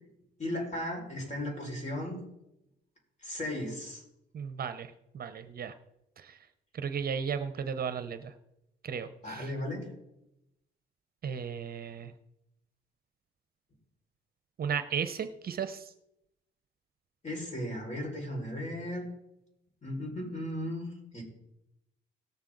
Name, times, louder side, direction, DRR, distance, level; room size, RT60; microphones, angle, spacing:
voice 1, 0.4-2.2 3.2-4.0 9.2-9.9 17.2-19.1 19.8-20.9 21.1-21.2, left 1 dB, 35° left, -1 dB, 5.3 m, -36 dB
voice 2, 4.3-5.7 6.2-6.5 6.7-8.3 8.8-9.5 11.2-12.1 14.6-15.9, right 7 dB, 50° right, 10 dB, 0.8 m, -35 dB
17.5 x 7.1 x 3.9 m, 0.86 s
cardioid pair, 90°, 20 cm